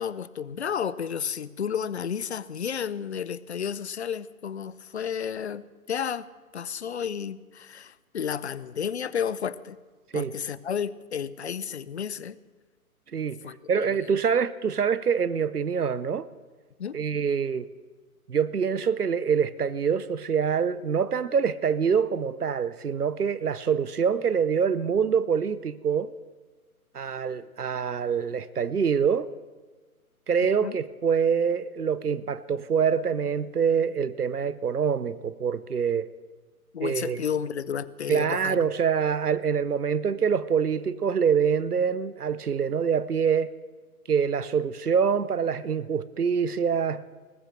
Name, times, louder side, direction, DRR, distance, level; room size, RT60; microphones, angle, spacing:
voice 1, 0.0-6.2 6.5-9.8 10.1-12.4 13.4-14.1 16.8-17.0 30.6-30.8 36.7-38.7, left 7 dB, 50° left, 18 dB, 0.6 m, -32 dB
voice 2, 13.7-16.2 16.9-17.6 18.3-26.1 26.9-29.3 30.3-36.1 36.8-37.2 38.1-43.5 44.1-47.0, right 7 dB, 80° right, 16 dB, 0.8 m, -25 dB
20.0 x 8.9 x 6.4 m, 1.3 s
figure-of-eight pair, 135°, 45 cm